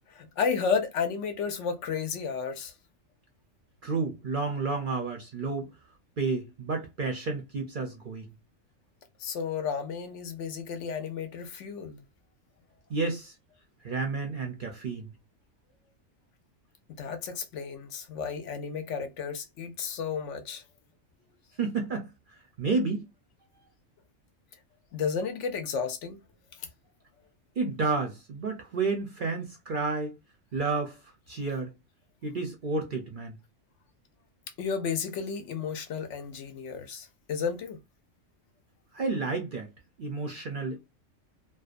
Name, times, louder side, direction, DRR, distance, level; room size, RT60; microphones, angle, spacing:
voice 1, 0.1-2.7 9.2-12.0 17.0-20.6 24.9-26.2 34.6-37.8, left 6 dB, 70° left, 0.9 m, -32 dB
voice 2, 3.8-5.7 6.2-8.3 12.9-13.3 13.8-15.1 21.6-22.1 22.6-23.0 27.6-30.1 30.5-31.0 31.3-31.7 32.2-33.4 38.9-39.7 40.0-40.8, right 4 dB, 50° right, 0.6 m, -30 dB
2.6 x 2.2 x 2.4 m
omnidirectional pair, 1.4 m